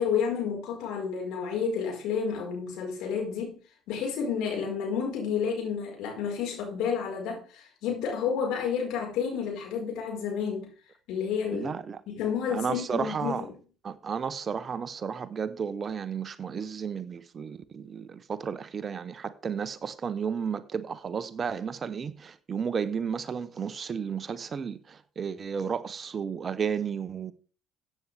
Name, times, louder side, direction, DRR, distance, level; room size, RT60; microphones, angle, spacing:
voice 1, 0.0-3.6 3.9-10.7 11.1-11.7 12.1-13.5, left 7 dB, 60° left, 4.8 m, -30 dB
voice 2, 11.5-12.0 12.5-13.4 13.8-27.3, right 6 dB, 40° right, 0.9 m, -33 dB
14.5 x 8.5 x 3.5 m
hypercardioid pair, 55°, 0 cm